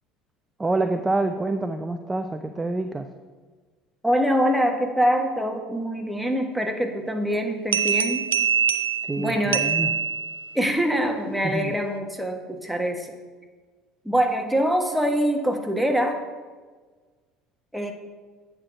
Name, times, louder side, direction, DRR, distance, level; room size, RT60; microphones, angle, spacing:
voice 1, 0.6-3.1 9.0-9.9 11.4-11.8, right 2 dB, 20° right, 7 dB, 0.5 m, -27 dB
voice 2, 4.0-8.3 9.2-9.7 10.5-13.2 14.0-16.2 17.7-17.9, equal, ahead, 3 dB, 1.4 m, -24 dB
sound 1, 7.7-10.7, right 8 dB, 85° right, 0.4 m, -24 dB
8.5 x 4.6 x 6.3 m, 1.4 s
hypercardioid pair, 65°, 0 cm